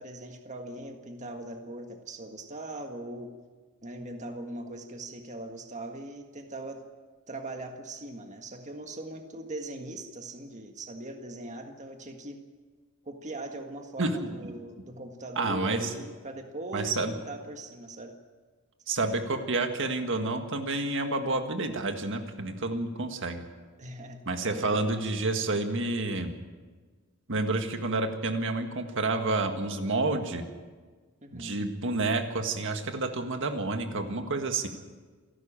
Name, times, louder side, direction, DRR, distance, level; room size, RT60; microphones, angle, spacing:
voice 1, 0.0-3.3 3.8-6.8 7.3-12.4 13.1-18.1 23.8-24.9 31.2-31.6, right 1 dB, 35° right, 4 dB, 1.7 m, -40 dB
voice 2, 14.0-14.3 15.4-15.9 16.7-17.1 18.9-23.4 24.3-26.3 27.3-30.4 31.3-34.7, right 2 dB, 60° right, 5 dB, 1.8 m, -29 dB
27.5 x 12.5 x 8.9 m, 1.4 s
head